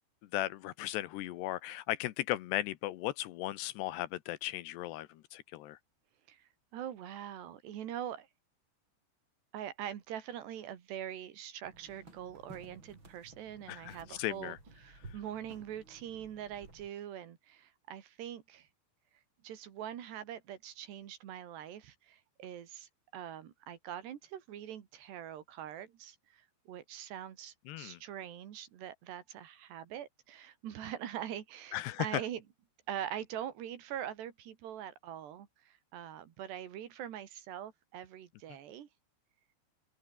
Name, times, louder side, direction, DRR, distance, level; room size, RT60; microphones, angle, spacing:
voice 1, 0.3-5.8 13.7-14.6 27.7-28.0 31.7-32.2, left 15 dB, 80° left, 3.0 m, -36 dB
voice 2, 6.7-8.3 9.5-14.6 14.8-18.7 19.4-32.4 32.9-38.9, right 10 dB, 75° right, 4.2 m, -43 dB
sound 1, 11.6-16.9, right 2 dB, 25° right, 7.8 m, -55 dB
open air
omnidirectional pair, 5.0 m